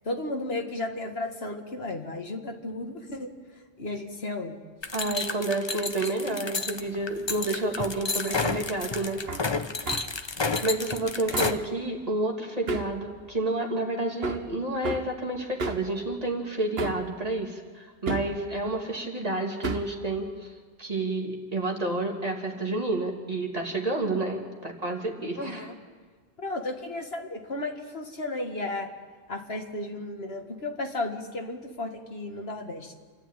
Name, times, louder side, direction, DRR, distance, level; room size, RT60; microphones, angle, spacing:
voice 1, 0.1-3.3 3.8-4.6 11.3-11.6 25.4-25.7 26.4-28.9 29.3-32.9, left 2 dB, 70° left, 3 dB, 2.1 m, -34 dB
sound 1, 4.8-11.5, left 3 dB, 30° left, 0.8 m, -30 dB
voice 2, 4.9-9.2 10.6-20.5 20.8-25.7, right 2 dB, 35° right, 1 dB, 2.6 m, -30 dB
Hammer, 9.3-9.5 9.9-10.1 11.3-11.6 12.7-13.0 14.2-14.5 14.8-15.1 15.6-15.9 16.8-17.1 18.1-18.4 19.6-20.0, right 4 dB, 65° right, 1.4 m, -32 dB
28.5 x 12.0 x 9.0 m, 1.5 s
omnidirectional pair, 1.1 m